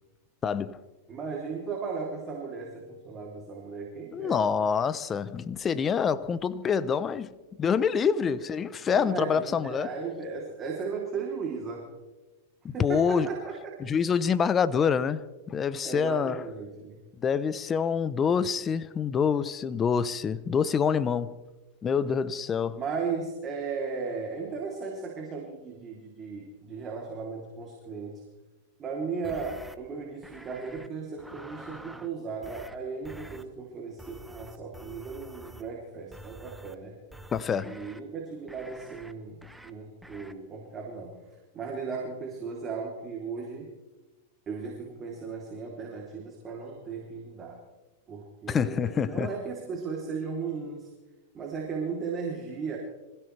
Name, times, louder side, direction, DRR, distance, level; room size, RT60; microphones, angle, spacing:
voice 1, 0.4-0.8 4.1-7.3 7.6-9.9 12.8-13.3 13.8-16.4 17.2-21.4 21.8-22.8 37.3-37.8 48.5-49.3, left 6 dB, 25° left, 0.8 m, -26 dB
voice 2, 1.1-4.5 8.9-11.9 12.7-13.5 15.8-17.0 22.7-28.2 28.8-37.0 37.6-41.2 41.5-43.7 44.5-47.6 48.1-50.9 51.3-52.8, right 5 dB, 25° right, 3.3 m, -36 dB
sound 1, 29.2-29.8 30.2-30.9 31.2-32.1 32.4-32.8 33.0-33.4 34.0-35.7 36.1-36.8 37.1-38.0 38.5-39.1 39.4-39.7 40.0-40.3, right 1 dB, 5° right, 1.1 m, -47 dB
26.0 x 16.0 x 3.4 m
hypercardioid pair, 125°, 0 cm